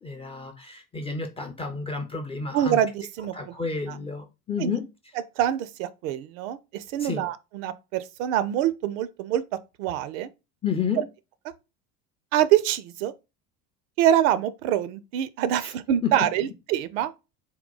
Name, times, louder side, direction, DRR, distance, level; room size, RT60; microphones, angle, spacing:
voice 1, 0.0-2.8 3.3-4.9 7.0-7.3 10.6-11.0 15.5-15.7 16.0-16.3, left 5 dB, 15° left, 0.4 m, -31 dB
voice 2, 2.5-3.5 3.9-4.0 4.6-4.7 5.4-9.4 9.8-10.3 11.0-11.1 12.3-13.1 14.0-17.1, right 11 dB, 55° right, 0.5 m, -25 dB
3.8 x 2.2 x 3.8 m
figure-of-eight pair, 70°, 49 cm